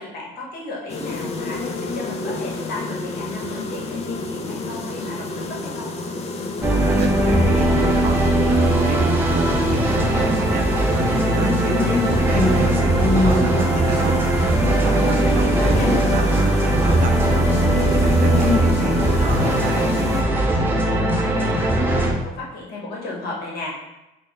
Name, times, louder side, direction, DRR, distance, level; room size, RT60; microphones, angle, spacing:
voice 1, 0.0-5.9 14.8-15.9 20.8-23.7, left 2 dB, 65° left, -3 dB, 1.3 m, -34 dB
sound 1, 0.9-20.2, left 3 dB, 40° left, 0.5 m, -27 dB
sound 2, 6.6-22.1, right 1 dB, 10° right, 0.6 m, -19 dB
voice 2, 7.0-14.3 14.7-17.2 17.5-19.9, right 5 dB, 55° right, 3 dB, 0.6 m, -31 dB
4.3 x 2.1 x 3.6 m, 0.94 s
cardioid pair, 110°, 17 cm